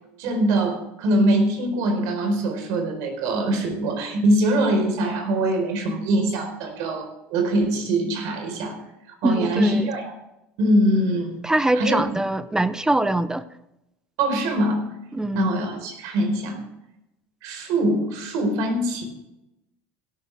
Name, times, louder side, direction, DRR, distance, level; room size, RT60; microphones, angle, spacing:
voice 1, 0.2-8.8 9.1-10.1 10.6-11.4 11.7-12.1 14.2-14.8 15.3-16.6 17.4-19.0, right 1 dB, 65° right, 4 dB, 4.4 m, -23 dB
voice 2, 9.2-9.9 11.4-13.4 15.1-15.5, right 1 dB, 10° right, 14 dB, 0.8 m, -23 dB
17.0 x 11.5 x 3.5 m, 0.89 s
hypercardioid pair, 80°, 6 cm